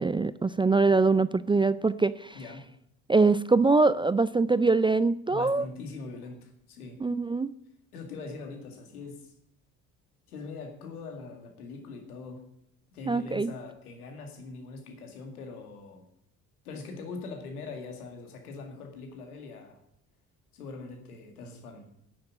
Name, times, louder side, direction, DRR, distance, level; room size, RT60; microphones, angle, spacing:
voice 1, 0.0-2.4 3.1-5.7 7.0-7.5 13.1-13.5, right 3 dB, 10° right, 15 dB, 0.4 m, -23 dB
voice 2, 2.3-2.7 5.3-7.0 7.9-9.3 10.3-12.5 12.9-16.0 16.6-19.8 20.5-21.9, left 3 dB, 85° left, 4 dB, 2.2 m, -42 dB
10.5 x 7.6 x 8.5 m, 0.75 s
hypercardioid pair, 55°, 44 cm